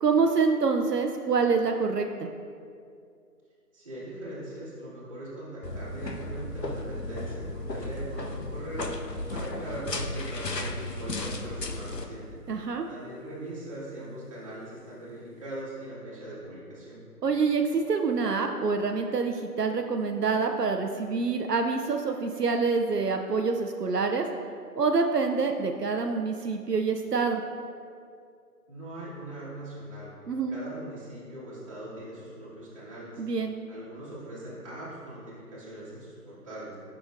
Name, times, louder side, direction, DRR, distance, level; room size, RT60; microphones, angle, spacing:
voice 1, 0.0-2.3 12.5-12.9 17.2-24.3 24.8-27.4 30.3-30.5 33.2-33.5, right 4 dB, 75° right, 4 dB, 0.7 m, -26 dB
voice 2, 3.7-17.0 28.7-30.2 30.5-33.2 33.7-36.8, right 1 dB, 20° right, -10 dB, 1.8 m, -40 dB
sound 1, 5.6-12.1, left 2 dB, 90° left, 0.9 m, -35 dB
10.5 x 6.1 x 2.5 m, 2.3 s
figure-of-eight pair, 160°, 48 cm